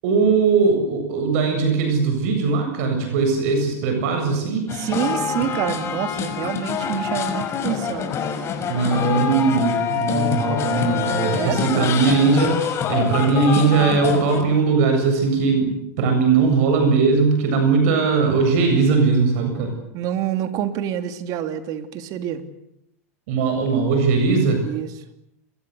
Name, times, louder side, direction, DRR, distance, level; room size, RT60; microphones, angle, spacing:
voice 1, 0.0-4.7 8.7-19.7 23.3-24.7, right 4 dB, 65° right, 5 dB, 7.9 m, -19 dB
sound 1, 4.7-14.4, left 7 dB, 35° left, 5.3 m, -25 dB
voice 2, 4.8-8.1 11.3-11.9 19.9-22.4 24.6-24.9, right 11 dB, 45° right, 8 dB, 3.1 m, -27 dB
28.0 x 23.0 x 8.2 m, 0.80 s
hypercardioid pair, 115°, 8 cm